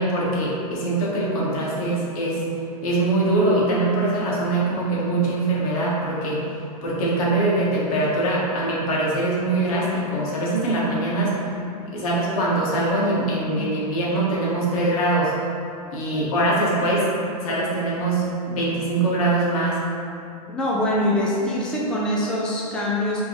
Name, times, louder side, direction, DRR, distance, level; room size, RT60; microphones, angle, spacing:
voice 1, 0.0-2.5 2.8-6.4 6.8-11.4 11.9-15.3 15.9-17.1 17.4-19.8, right 2 dB, 65° left, -5 dB, 1.4 m, -22 dB
voice 2, 20.5-23.3, left 1 dB, 5° left, -5 dB, 0.4 m, -23 dB
5.2 x 2.9 x 3.1 m, 2.6 s
hypercardioid pair, 135°, 20 cm